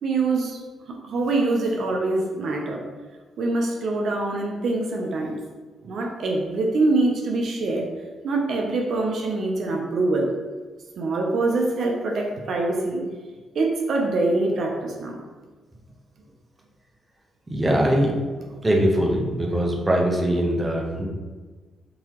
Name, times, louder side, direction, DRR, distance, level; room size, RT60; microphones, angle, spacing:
voice 1, 0.0-0.6 0.9-2.8 3.4-5.4 5.8-7.9 8.2-10.3 11.0-13.1 13.5-15.2 18.5-18.6, right 2 dB, 60° right, 1 dB, 0.5 m, -24 dB
voice 2, 17.5-18.1 18.6-21.1, right 1 dB, 20° right, -1 dB, 0.7 m, -21 dB
3.8 x 2.8 x 2.9 m, 1.4 s
cardioid pair, 85°, 0 cm